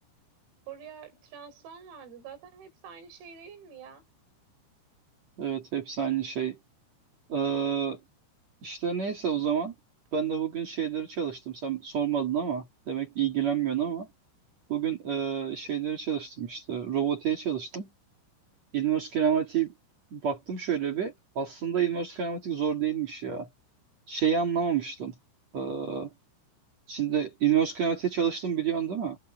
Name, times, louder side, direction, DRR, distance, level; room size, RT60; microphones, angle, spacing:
voice 1, 0.7-4.0, right 7 dB, 85° right, 7.8 m, -46 dB
voice 2, 5.4-6.6 7.3-8.0 8.6-9.7 10.1-14.1 14.7-17.9 18.7-19.7 20.1-23.5 24.1-25.1 25.5-26.1 26.9-29.2, right 8 dB, 45° right, 2.8 m, -29 dB
omnidirectional pair, 6.0 m